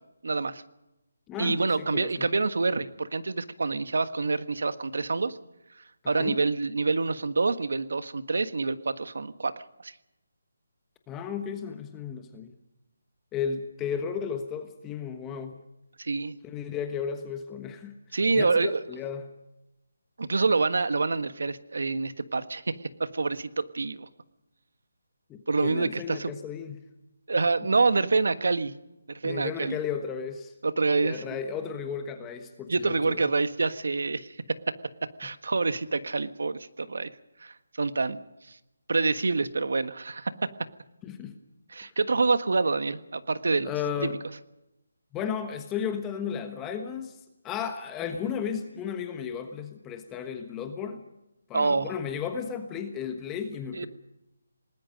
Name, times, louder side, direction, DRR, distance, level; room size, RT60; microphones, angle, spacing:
voice 1, 0.2-0.6 1.4-5.4 6.0-9.9 16.0-16.4 18.1-18.8 20.2-24.1 25.5-26.3 27.3-28.8 29.1-29.8 30.6-31.4 32.7-34.4 35.2-37.1 37.4-38.2 38.5-38.6 38.9-40.5 41.7-43.7 44.0-44.1 51.5-51.9 53.7-53.9, right 3 dB, 75° right, 12 dB, 1.4 m, -27 dB
voice 2, 1.3-2.3 6.1-6.4 11.1-12.5 13.3-15.5 16.4-17.9 18.3-19.3 25.3-26.8 29.2-30.5 31.0-33.2 41.0-41.4 43.6-44.2 45.1-51.0 51.5-53.9, left 7 dB, 10° left, 6 dB, 1.3 m, -34 dB
28.5 x 20.0 x 5.3 m, 0.92 s
hypercardioid pair, 165°, 0 cm